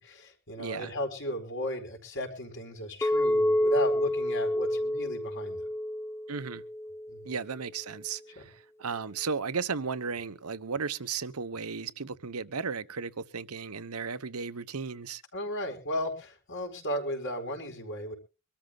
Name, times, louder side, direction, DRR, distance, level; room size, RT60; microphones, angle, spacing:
voice 1, 0.0-5.7 7.1-7.3 8.4-8.5 15.3-18.1, left 1 dB, 60° left, 4.6 m, -35 dB
voice 2, 0.6-0.9 6.3-6.6 7.2-15.2, right 5 dB, 80° right, 1.0 m, -35 dB
Chink clink, 3.0-7.3, left 1 dB, 10° left, 1.0 m, -28 dB
24.5 x 13.0 x 2.4 m
head